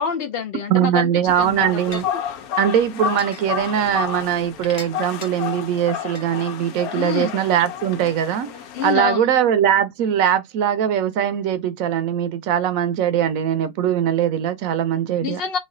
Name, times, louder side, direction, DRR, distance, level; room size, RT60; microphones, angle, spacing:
voice 1, 0.0-2.0 7.0-7.3 8.7-9.2 15.2-15.6, left 7 dB, 70° left, 0.5 m, -26 dB
voice 2, 0.7-2.0 2.6-8.5 8.8-15.4, right 10 dB, 75° right, 1.0 m, -21 dB
sound 1, 1.0-1.1 1.9-2.0 3.2-3.7 4.6-5.3 6.2-6.3, left 3 dB, 40° left, 0.9 m, -37 dB
sound 2, 1.3-8.9, left 9 dB, 90° left, 1.1 m, -31 dB
3.1 x 2.3 x 3.7 m
omnidirectional pair, 1.5 m